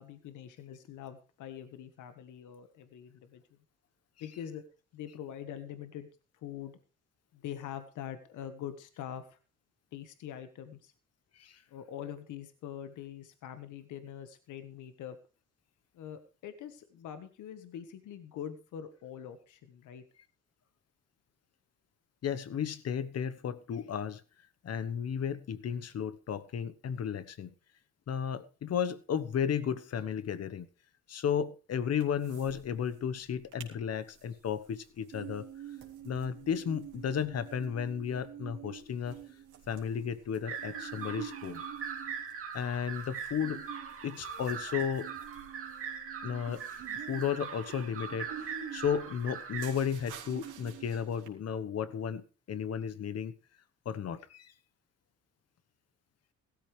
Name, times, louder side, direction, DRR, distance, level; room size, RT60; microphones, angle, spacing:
voice 1, 0.0-3.4 4.2-4.6 4.9-6.1 6.4-6.8 7.3-9.4 9.9-10.9 11.7-15.2 15.9-20.0, left 9 dB, 80° left, 1.5 m, -44 dB
voice 2, 22.2-24.2 24.6-27.5 28.1-30.7 31.1-35.5 36.0-39.2 39.7-41.6 42.5-43.6 44.0-45.1 46.2-46.6 47.1-53.3 53.8-54.5, left 8 dB, 55° left, 1.2 m, -34 dB
sound 1, 32.0-32.6 32.9-33.0 33.3-33.7 34.1-51.3, right 9 dB, 90° right, 3.3 m, -47 dB
sound 2, 40.4-49.7, right 7 dB, 45° right, 2.5 m, -41 dB
16.5 x 13.0 x 3.3 m
cardioid pair, 90°, 30 cm